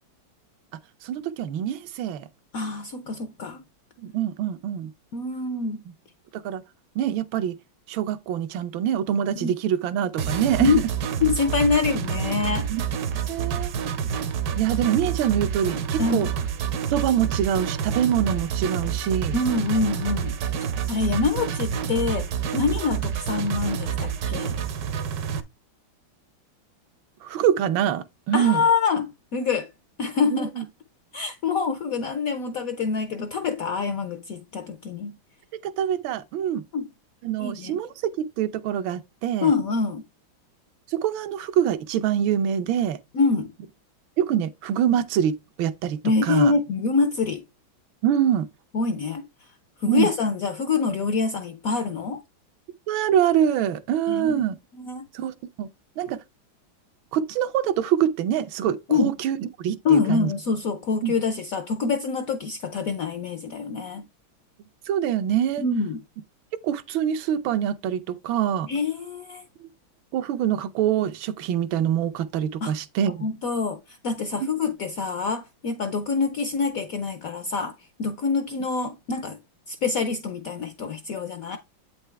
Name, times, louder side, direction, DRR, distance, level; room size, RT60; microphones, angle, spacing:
voice 1, 1.0-2.3 4.0-4.9 6.4-6.6 6.9-7.5 7.9-10.8 12.7-12.8 13.3-13.7 14.6-16.3 16.9-19.4 27.2-28.6 30.3-30.6 35.6-36.6 37.2-39.5 40.9-43.0 44.2-46.0 46.3-46.5 48.0-48.5 49.9-50.1 52.9-54.6 55.1-55.7 56.0-56.2 57.1-59.4 59.6-60.3 61.0-61.1 64.9-65.6 66.6-68.7 70.1-73.2, right 9 dB, 80° right, 1.5 m, -25 dB
voice 2, 2.5-3.6 5.1-5.8 9.4-9.5 10.6-10.8 11.2-12.7 16.0-16.3 19.3-20.3 20.9-24.6 28.3-29.7 30.0-30.6 31.1-35.2 36.7-36.9 37.4-37.8 39.4-40.0 43.1-43.5 46.0-47.4 48.7-49.2 49.8-52.2 54.1-54.5 54.8-55.1 58.9-59.1 59.8-64.1 65.6-66.0 68.7-69.4 72.6-72.7 73.2-79.4 79.7-81.6, left 4 dB, 70° left, 0.8 m, -25 dB
sound 1, 10.2-25.4, right 7 dB, 65° right, 1.0 m, -28 dB
8.2 x 4.5 x 3.3 m
omnidirectional pair, 2.2 m